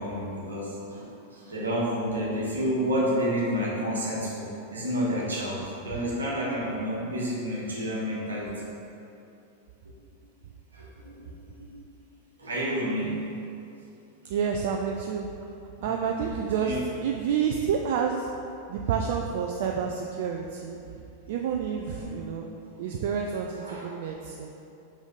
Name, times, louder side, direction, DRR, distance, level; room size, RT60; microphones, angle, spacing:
voice 1, 0.0-8.7 10.7-11.1 11.6-11.7 12.4-13.2 15.8-15.9 16.6-16.8 21.9-22.1 23.6-23.8, equal, 75° right, -6 dB, 1.4 m, -30 dB
voice 2, 14.2-15.3 15.8-18.3 18.7-20.8 21.3-22.5 22.8-24.5, right 7 dB, 50° right, 2 dB, 0.3 m, -29 dB
5.4 x 5.0 x 3.7 m, 2.7 s
figure-of-eight pair, 90°, 0 cm